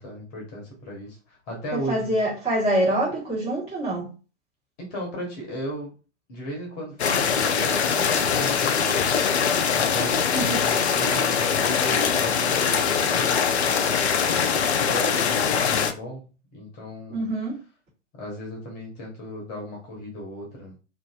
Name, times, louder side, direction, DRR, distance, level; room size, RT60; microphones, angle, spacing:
voice 1, 0.0-2.2 4.8-5.9 6.3-9.1 9.7-13.4 14.2-17.3 18.1-20.7, equal, 35° left, 0.9 m, -36 dB
voice 2, 1.7-4.1 10.3-10.7 17.1-17.6, right 1 dB, 15° right, 1.3 m, -25 dB
sound 1, 7.0-15.9, left 6 dB, 60° left, 0.5 m, -22 dB
2.6 x 2.5 x 2.3 m
figure-of-eight pair, 110°, 37 cm